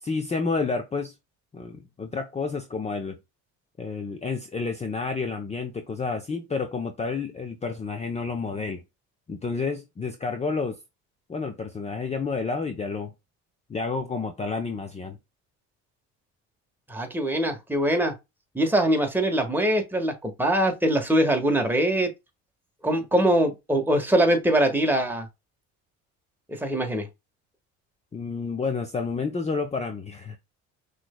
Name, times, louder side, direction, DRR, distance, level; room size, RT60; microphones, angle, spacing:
voice 1, 0.0-1.1 1.5-3.2 3.8-8.8 9.3-10.8 11.3-13.1 13.7-15.2 28.1-30.4, left 4 dB, 20° left, 0.8 m, -30 dB
voice 2, 16.9-18.1 18.5-22.1 22.8-25.3 26.5-27.1, right 1 dB, 5° right, 1.4 m, -23 dB
5.9 x 3.4 x 2.2 m
cardioid pair, 110°, 31 cm